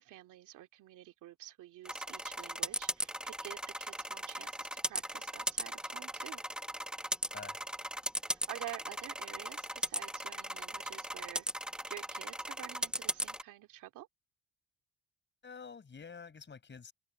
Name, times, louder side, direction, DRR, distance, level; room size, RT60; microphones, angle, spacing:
voice 1, 0.0-6.4 8.3-11.5 11.8-14.1, right 15 dB, 90° right, 2.6 m, -49 dB
sound 1, 1.8-13.4, equal, 5° right, 1.4 m, -38 dB
voice 2, 15.4-16.9, left 5 dB, 40° left, 6.3 m, -48 dB
open air
cardioid pair, 90°, 30 cm